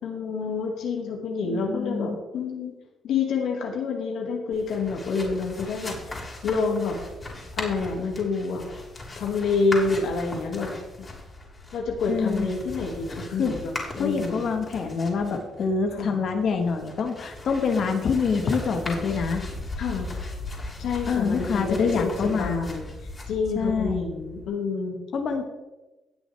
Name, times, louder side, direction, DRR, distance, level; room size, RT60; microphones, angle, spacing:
voice 1, 0.0-2.7 3.0-7.0 7.6-8.6 9.2-11.1 11.7-14.4 15.9-16.2 19.8-20.1 20.8-22.9 23.3-25.0, left 4 dB, 80° left, 0 dB, 2.0 m, -28 dB
voice 2, 1.4-2.1 12.1-12.5 13.4-13.5 14.0-19.4 21.1-22.7 23.5-24.0 25.1-25.4, left 5 dB, 60° left, 5 dB, 1.3 m, -26 dB
sound 1, 4.5-24.5, left 2 dB, 30° left, 3.3 m, -38 dB
18.0 x 6.2 x 3.4 m, 1.1 s
cardioid pair, 90°, 0 cm